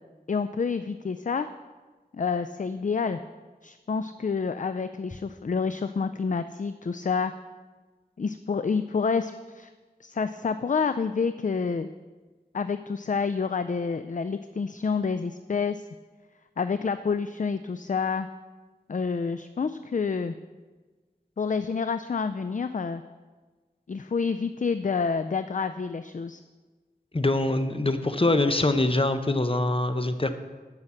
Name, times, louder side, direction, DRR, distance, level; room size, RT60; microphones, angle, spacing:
voice 1, 0.3-1.5 2.1-3.2 3.6-7.3 8.2-9.7 10.0-11.9 12.5-15.8 16.6-18.3 18.9-20.3 21.4-23.0 23.9-26.4, left 5 dB, 50° left, 11 dB, 0.4 m, -28 dB
voice 2, 27.1-30.3, left 2 dB, 35° left, 9 dB, 0.8 m, -24 dB
9.8 x 6.5 x 7.2 m, 1.3 s
wide cardioid pair, 40°, 17 cm